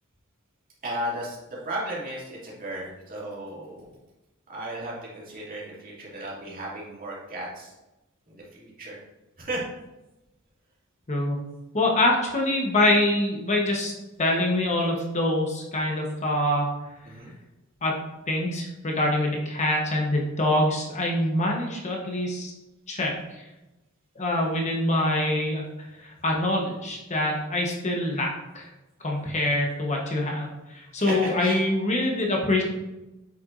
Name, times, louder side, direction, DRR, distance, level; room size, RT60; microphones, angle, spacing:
voice 1, 0.8-1.4 1.6-3.8 4.5-7.7 8.3-9.0 9.4-9.6 17.1-17.3 31.0-31.7, right 1 dB, 40° right, -5 dB, 2.3 m, -34 dB
voice 2, 11.7-13.9 14.2-16.7 17.8-22.5 22.9-23.4 24.2-25.6 26.0-28.7 29.0-32.6, left 1 dB, 35° left, -1 dB, 1.0 m, -25 dB
7.9 x 5.8 x 2.5 m, 1.0 s
head